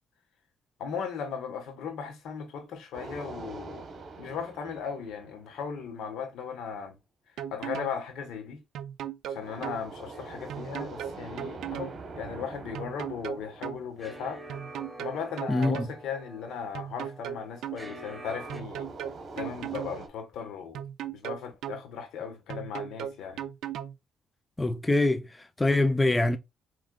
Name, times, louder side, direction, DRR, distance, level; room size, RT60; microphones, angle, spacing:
voice 1, 0.8-3.9 4.2-7.0 7.5-8.6 9.3-14.4 15.0-18.9 19.4-20.8 21.1-23.4, left 6 dB, 85° left, 1.2 m, -37 dB
sound 1, 2.9-6.0 9.4-14.8 18.3-20.1, right 3 dB, 50° right, 1.2 m, -44 dB
sound 2, 7.4-8.0 8.7-9.8 10.5-11.9 12.7-13.8 14.5-16.0 16.7-17.8 18.5-20.0 20.7-21.8 22.5-24.0, right 10 dB, 80° right, 0.4 m, -36 dB
sound 3, 10.1-18.6, right 1 dB, 15° right, 1.1 m, -48 dB
voice 2, 15.5-15.9 24.6-26.4, left 2 dB, 15° left, 0.5 m, -24 dB
4.8 x 3.1 x 2.3 m
cardioid pair, 90°, 0 cm